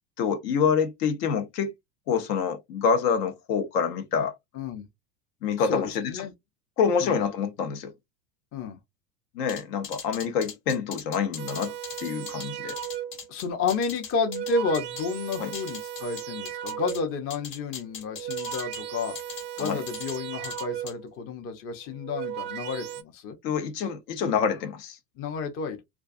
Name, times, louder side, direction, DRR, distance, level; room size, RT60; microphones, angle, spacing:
voice 1, 0.2-1.7 2.1-4.3 5.4-6.1 6.8-7.9 9.3-11.7 12.0-12.7 15.4-15.5 19.6-19.8 23.4-25.0, left 6 dB, 75° left, 0.8 m, -26 dB
voice 2, 4.5-4.9 5.6-6.3 7.0-7.2 8.5-8.8 13.3-19.2 19.6-23.4 25.2-25.8, left 4 dB, 30° left, 0.5 m, -31 dB
sound 1, 9.5-15.0 15.3-17.0 17.3-18.8 19.1-20.2 20.4-20.9, left 6 dB, 45° left, 1.2 m, -40 dB
sound 2, 11.4-13.3 14.1-17.2 18.0-21.1 21.9-23.0, right 11 dB, 25° right, 0.3 m, -36 dB
2.4 x 2.2 x 2.4 m
hypercardioid pair, 90°, 49 cm